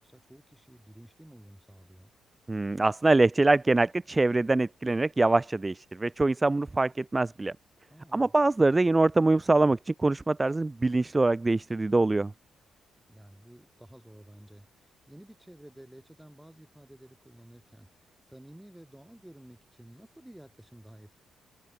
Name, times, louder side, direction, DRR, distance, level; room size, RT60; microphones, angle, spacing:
voice 1, 0.0-2.1 7.9-8.3 13.1-21.1, right 1 dB, 5° right, 4.6 m, -52 dB
voice 2, 2.5-7.5 8.1-12.3, right 2 dB, 25° right, 0.4 m, -24 dB
supercardioid pair, 65°, 0 cm